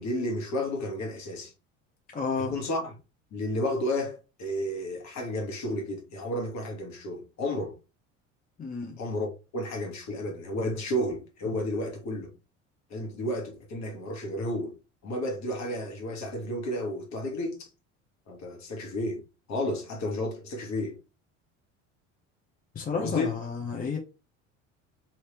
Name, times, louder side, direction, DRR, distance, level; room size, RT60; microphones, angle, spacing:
voice 1, 0.0-1.5 2.5-2.9 3.3-7.8 9.0-12.3 12.9-14.7 15.0-17.7 18.3-19.2 19.5-21.0 23.0-23.3, left 1 dB, 45° left, 1.4 m, -32 dB
voice 2, 2.1-2.6 8.6-9.0 22.7-24.0, left 5 dB, 20° left, 0.8 m, -31 dB
3.2 x 2.8 x 2.9 m
hypercardioid pair, 80°, 37 cm